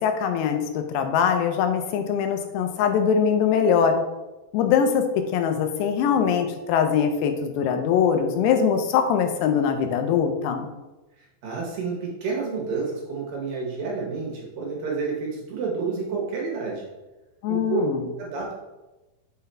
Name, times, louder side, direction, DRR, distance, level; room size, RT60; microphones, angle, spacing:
voice 1, 0.0-4.0 4.5-5.1 5.3-10.7 17.4-18.0, left 7 dB, 85° left, 6 dB, 2.8 m, -22 dB
voice 2, 11.2-16.9 17.5-17.8 18.2-18.5, right 4 dB, 70° right, -2 dB, 2.5 m, -29 dB
6.6 x 4.0 x 4.2 m, 1.1 s
omnidirectional pair, 4.8 m